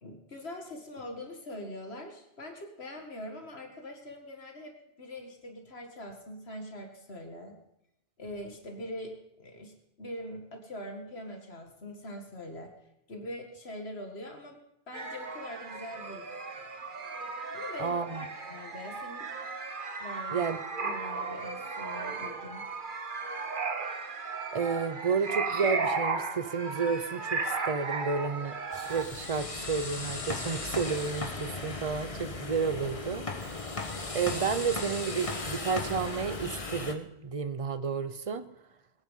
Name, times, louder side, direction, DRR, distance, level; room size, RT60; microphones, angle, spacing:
voice 1, 0.0-7.6 8.2-12.7 13.1-14.6 14.9-16.3 17.5-19.3 20.0-20.4 20.8-22.6, left 1 dB, 75° left, 3 dB, 2.2 m, -43 dB
sound 1, 14.9-29.0, right 4 dB, 55° right, 1.4 m, -35 dB
voice 2, 17.8-18.3 20.3-20.6 24.5-33.7 34.1-38.4, right 5 dB, 35° right, 12 dB, 0.9 m, -31 dB
sound 2, 28.7-36.9, left 3 dB, 30° left, 1.3 m, -37 dB
21.0 x 9.7 x 5.7 m, 0.84 s
omnidirectional pair, 1.1 m